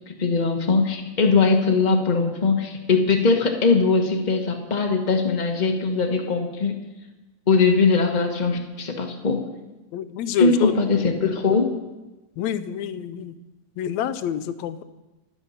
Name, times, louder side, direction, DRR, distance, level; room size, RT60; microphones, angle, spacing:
voice 1, 0.0-6.7 7.5-9.5 10.4-11.7, left 4 dB, 45° left, 3 dB, 0.5 m, -21 dB
voice 2, 9.9-10.7 12.4-13.4 13.8-14.8, left 9 dB, 75° left, 12 dB, 1.9 m, -27 dB
25.5 x 9.0 x 5.7 m, 1.1 s
omnidirectional pair, 3.4 m